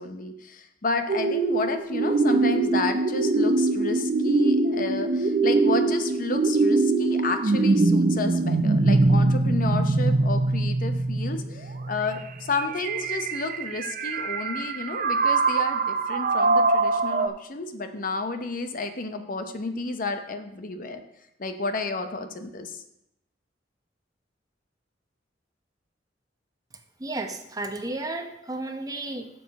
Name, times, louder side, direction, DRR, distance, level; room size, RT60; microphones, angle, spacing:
voice 1, 0.0-21.0 21.4-22.8, left 3 dB, 50° left, 8 dB, 0.8 m, -31 dB
sound 1, 1.1-17.3, right 3 dB, 50° right, 0.6 m, -23 dB
voice 2, 27.0-29.3, right 2 dB, 20° right, 5 dB, 0.8 m, -33 dB
11.0 x 7.1 x 4.2 m, 0.82 s
head